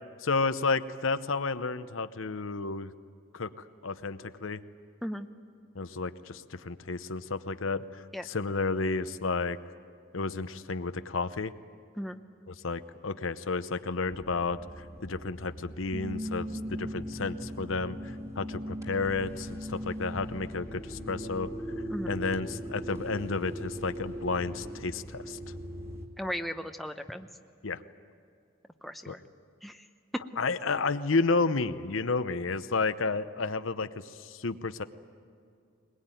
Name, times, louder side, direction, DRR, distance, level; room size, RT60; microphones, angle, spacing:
voice 1, 0.2-2.9 3.3-3.5 3.8-4.6 5.7-9.6 10.1-11.5 12.5-21.5 22.1-25.4 27.6-27.8 29.1-29.2 30.4-34.8, left 4 dB, 80° left, 11 dB, 0.8 m, -31 dB
sound 1, 14.1-26.1, equal, 15° right, 2.2 m, -39 dB
voice 2, 26.2-27.3 28.8-29.2 29.6-29.9, equal, ahead, 6 dB, 0.7 m, -36 dB
21.5 x 21.0 x 9.1 m, 2.4 s
head